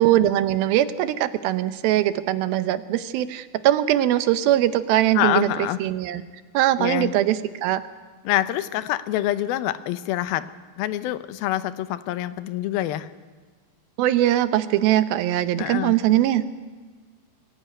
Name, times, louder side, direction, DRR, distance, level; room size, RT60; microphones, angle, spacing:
voice 1, 0.0-6.2 6.5-7.8 14.0-16.6, right 13 dB, 85° right, 12 dB, 2.7 m, -21 dB
voice 2, 5.2-5.8 6.8-7.1 8.3-10.5 10.8-13.1 15.6-16.0, left 13 dB, 85° left, 13 dB, 2.6 m, -26 dB
23.5 x 16.5 x 9.3 m, 1.4 s
omnidirectional pair, 4.2 m